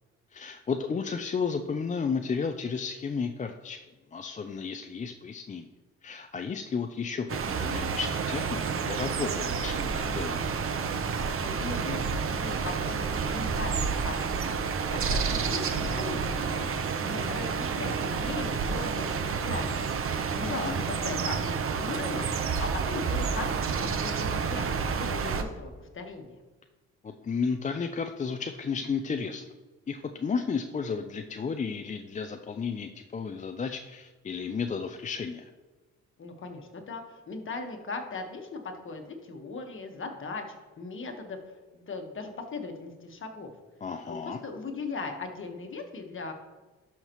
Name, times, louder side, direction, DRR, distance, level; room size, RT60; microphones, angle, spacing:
voice 1, 0.3-3.8 4.1-5.7 6.0-10.5 20.4-20.8 22.6-22.7 27.0-29.4 29.9-35.5 43.8-44.4, left 5 dB, 25° left, 6 dB, 0.5 m, -33 dB
sound 1, 7.3-25.4, right 5 dB, 45° right, 0.9 m, -30 dB
voice 2, 11.4-19.9 20.3-26.4 36.2-40.4 40.8-41.4 41.7-43.5 44.0-46.3, left 3 dB, 40° left, 4 dB, 1.4 m, -38 dB
12.0 x 5.8 x 3.1 m, 1.2 s
cardioid pair, 90°, 30 cm